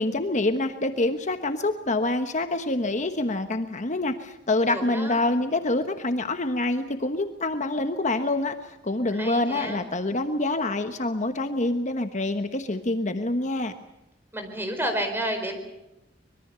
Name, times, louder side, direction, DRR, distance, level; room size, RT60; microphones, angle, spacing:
voice 1, 0.0-13.7, left 2 dB, 40° left, 7 dB, 1.2 m, -26 dB
voice 2, 4.7-5.2 9.1-9.8 14.3-15.6, right 1 dB, 10° right, 6 dB, 4.6 m, -30 dB
24.5 x 22.0 x 6.9 m, 0.94 s
head